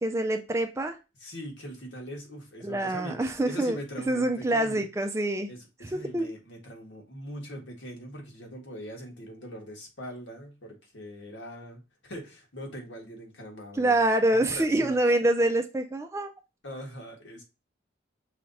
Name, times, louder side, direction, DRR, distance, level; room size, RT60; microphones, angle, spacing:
voice 1, 0.0-1.0 2.6-3.8 4.1-5.5 5.8-6.3 13.7-16.3, right 1 dB, 15° right, 0.4 m, -26 dB
voice 2, 1.2-4.8 5.5-14.0 14.3-14.9 16.6-17.4, equal, 80° left, 1.4 m, -41 dB
5.6 x 3.3 x 2.6 m
head